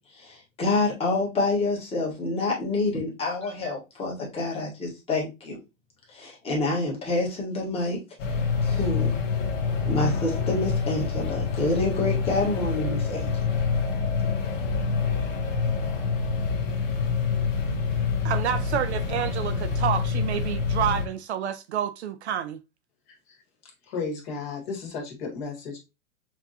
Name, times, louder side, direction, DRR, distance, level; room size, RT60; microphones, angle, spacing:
voice 1, 0.1-5.6 6.1-8.0 8.6-9.1 9.9-13.6, left 2 dB, 15° left, 1.5 m, -27 dB
Industrial Ambience.L, 8.2-21.1, left 5 dB, 60° left, 1.3 m, -26 dB
voice 2, 18.2-22.6, right 9 dB, 55° right, 0.5 m, -29 dB
voice 3, 23.6-25.8, left 4 dB, 45° left, 1.9 m, -34 dB
5.8 x 3.0 x 2.5 m
hypercardioid pair, 145°, 42 cm